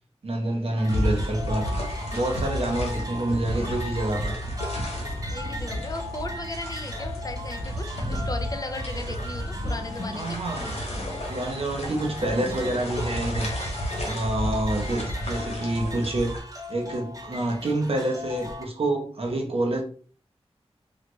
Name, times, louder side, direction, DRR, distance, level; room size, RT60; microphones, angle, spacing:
voice 1, 0.2-1.7 2.1-4.3 10.1-10.7 11.3-13.5 14.0-16.4 16.7-19.8, right 1 dB, 65° right, 0.9 m, -27 dB
sound 1, 0.8-18.6, left 1 dB, 35° right, 0.6 m, -39 dB
sound 2, 0.9-16.4, equal, 70° left, 1.1 m, -32 dB
voice 2, 5.3-10.4, left 2 dB, 35° left, 0.5 m, -36 dB
3.4 x 2.3 x 3.1 m
wide cardioid pair, 95°, 11 cm